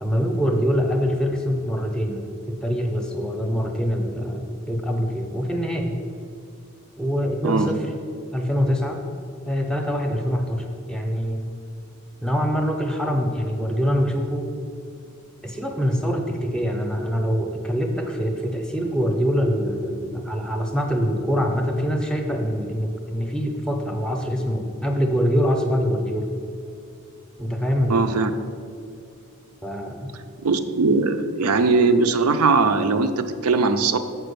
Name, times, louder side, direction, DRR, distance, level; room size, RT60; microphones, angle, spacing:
voice 1, 0.0-6.0 7.0-7.9 8.3-9.0 9.5-11.4 12.2-14.5 15.4-26.3 27.4-28.2 29.6-30.1, equal, 5° left, 3 dB, 0.6 m, -24 dB
voice 2, 27.9-28.3 30.4-34.0, right 4 dB, 85° right, 9 dB, 0.5 m, -20 dB
7.2 x 4.5 x 6.8 m, 2.4 s
head